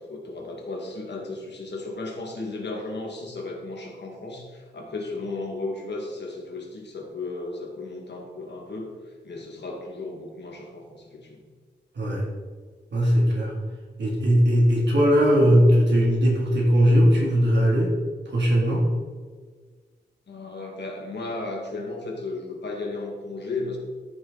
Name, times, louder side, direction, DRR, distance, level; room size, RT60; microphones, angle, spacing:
voice 1, 0.0-11.4 20.3-23.8, left 3 dB, 70° left, 0 dB, 2.3 m, -35 dB
voice 2, 12.9-13.5 14.0-17.9 18.2-18.8, equal, 75° right, -3 dB, 3.1 m, -19 dB
13.5 x 7.1 x 4.2 m, 1.5 s
wide cardioid pair, 150°, 18 cm